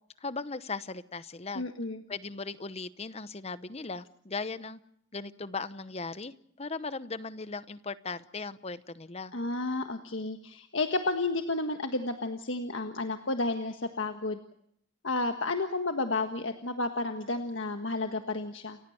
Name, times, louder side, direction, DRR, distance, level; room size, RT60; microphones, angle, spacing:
voice 1, 0.2-1.6 2.1-4.8 5.1-9.3, left 4 dB, 35° left, 15 dB, 0.9 m, -38 dB
voice 2, 1.5-2.0 9.3-14.4 15.0-18.8, left 2 dB, 80° left, 6 dB, 1.6 m, -31 dB
29.5 x 15.5 x 8.0 m, 0.70 s
head